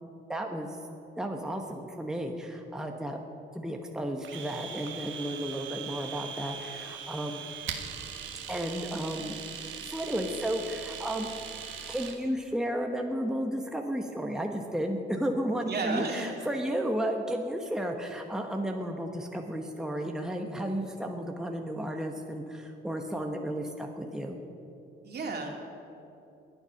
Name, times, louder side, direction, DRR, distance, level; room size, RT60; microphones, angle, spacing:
voice 1, 0.3-0.8 1.2-3.2 3.5-7.4 8.5-9.4 9.9-11.3 11.9-24.4, equal, 5° right, 2 dB, 1.1 m, -33 dB
Domestic sounds home sounds, 4.2-12.2, right 7 dB, 75° right, 1.4 m, -40 dB
voice 2, 15.6-16.4 25.0-25.5, right 3 dB, 55° right, 1 dB, 2.6 m, -32 dB
21.5 x 8.1 x 5.9 m, 2.9 s
cardioid pair, 90°, 20 cm